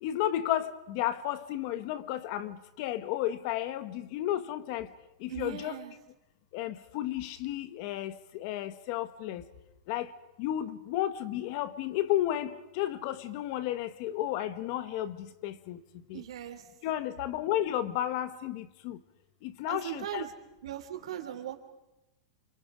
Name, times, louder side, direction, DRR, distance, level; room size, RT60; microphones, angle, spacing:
voice 1, 0.0-4.9 5.2-5.8 6.5-9.4 9.9-10.1 10.4-15.8 16.1-16.2 16.8-19.0 19.4-20.3, left 12 dB, 40° left, 1.1 m, -33 dB
voice 2, 5.3-5.9 16.1-16.6 19.7-20.3 20.6-21.5, right 11 dB, 80° right, 3.2 m, -38 dB
28.5 x 26.0 x 5.1 m
supercardioid pair, 170°, 3 cm